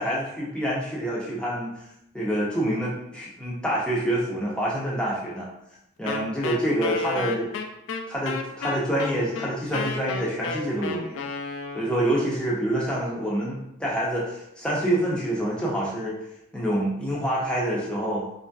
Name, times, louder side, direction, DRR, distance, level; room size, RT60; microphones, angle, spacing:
voice 1, 0.0-1.7 2.1-5.5 6.0-7.5 8.1-11.2 11.7-16.1 16.5-18.2, right 1 dB, 5° left, -6 dB, 0.5 m, -27 dB
Wind instrument woodwind instrument, 6.1-12.1, left 4 dB, 85° left, 0.3 m, -32 dB
3.0 x 2.6 x 2.2 m, 0.82 s
head